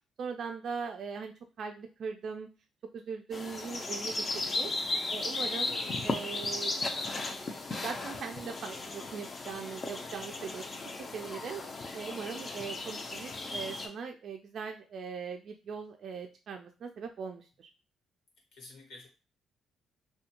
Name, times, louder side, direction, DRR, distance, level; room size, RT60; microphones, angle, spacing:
voice 1, 0.2-2.5 2.9-4.7 5.1-5.8 6.0-6.7 7.8-10.6 11.1-11.6 11.9-17.7, right 6 dB, 60° right, 3 dB, 0.3 m, -40 dB
sound 1, 3.3-13.9, left 2 dB, 40° left, 0.5 m, -36 dB
voice 2, 5.6-6.1 18.5-19.1, left 3 dB, 80° left, 1 dB, 1.1 m, -50 dB
2.5 x 2.2 x 2.8 m, 0.32 s
cardioid pair, 90°, 0 cm